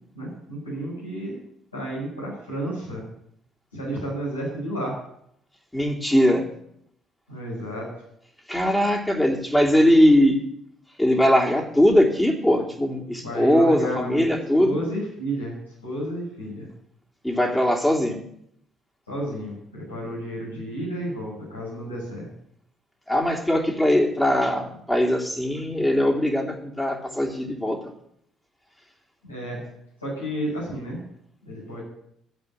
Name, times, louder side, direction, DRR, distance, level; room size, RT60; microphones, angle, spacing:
voice 1, 0.2-1.4 1.7-3.0 3.7-4.9 7.3-7.9 13.2-15.5 15.8-16.7 19.1-22.3 29.2-29.6 30.0-31.0 31.4-31.8, right 1 dB, 85° left, -6 dB, 7.0 m, -31 dB
voice 2, 5.7-6.4 8.5-10.4 11.0-14.8 17.2-18.2 23.1-27.8, equal, 10° left, -1 dB, 3.1 m, -20 dB
13.5 x 8.1 x 9.0 m, 0.72 s
figure-of-eight pair, 50°, 0 cm